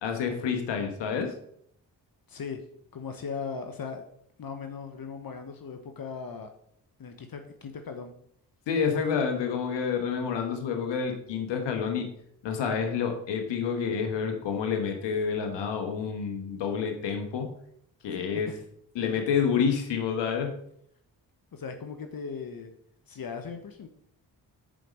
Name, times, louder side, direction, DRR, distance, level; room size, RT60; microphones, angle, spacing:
voice 1, 0.0-1.3 8.7-12.1 12.4-17.5 18.0-18.5 18.9-20.5, left 6 dB, 85° left, 5 dB, 1.4 m, -28 dB
voice 2, 2.3-2.6 2.9-4.0 4.4-6.5 7.0-8.1 19.0-19.1 21.5-22.7 23.1-23.9, left 5 dB, 55° left, 6 dB, 1.2 m, -38 dB
7.6 x 5.1 x 6.3 m, 0.68 s
supercardioid pair, 45°, 42 cm